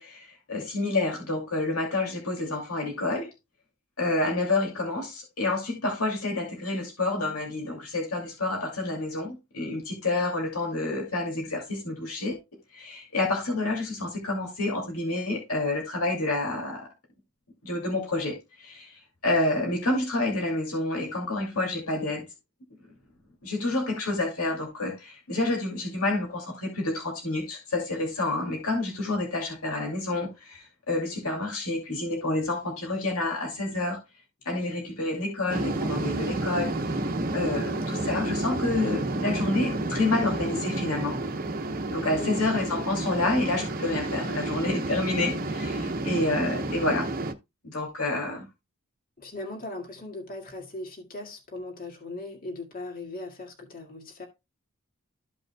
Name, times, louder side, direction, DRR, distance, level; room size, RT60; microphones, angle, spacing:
voice 1, 0.0-3.3 4.0-12.4 12.7-16.9 17.6-22.3 23.4-34.0 34.4-36.7 37.3-41.2 41.9-47.1 47.6-48.5, left 2 dB, 75° left, 2.4 m, -29 dB
sound 1, 35.5-47.3, right 2 dB, 40° right, 0.9 m, -30 dB
voice 2, 37.4-37.9 38.3-38.5 42.2-42.4 49.2-54.3, left 2 dB, 40° left, 1.9 m, -39 dB
14.0 x 5.3 x 2.2 m
head